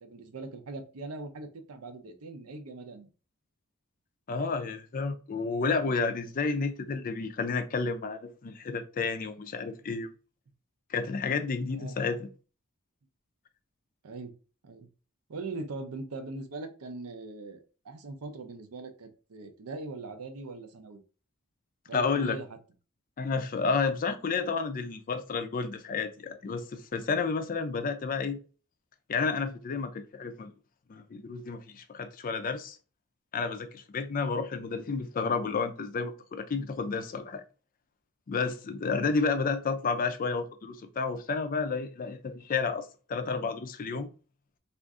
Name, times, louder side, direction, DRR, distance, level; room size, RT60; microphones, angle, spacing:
voice 1, 0.0-3.1 11.7-12.0 14.0-14.3 14.6-14.9 15.3-21.0 21.9-22.5, right 3 dB, 85° right, 0.6 m, -41 dB
voice 2, 4.3-10.1 10.9-12.3 21.9-22.4 23.2-28.4 29.1-30.5 30.9-32.8 33.3-37.4 38.3-44.1, left 4 dB, 40° left, 0.4 m, -31 dB
2.5 x 2.4 x 3.5 m
head